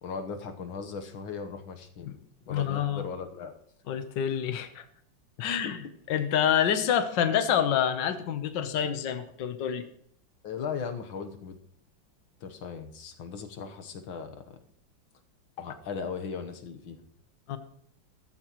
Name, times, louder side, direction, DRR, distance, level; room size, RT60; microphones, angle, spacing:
voice 1, 0.0-2.1 2.5-3.6 5.4-5.7 10.4-11.6 12.4-14.6 15.6-17.0, left 6 dB, 90° left, 6 dB, 2.0 m, -38 dB
voice 2, 2.5-3.0 3.9-4.8 5.4-5.8 6.1-9.8 17.5-17.6, left 9 dB, 70° left, 9 dB, 1.7 m, -27 dB
15.0 x 14.0 x 3.1 m, 0.64 s
omnidirectional pair, 2.1 m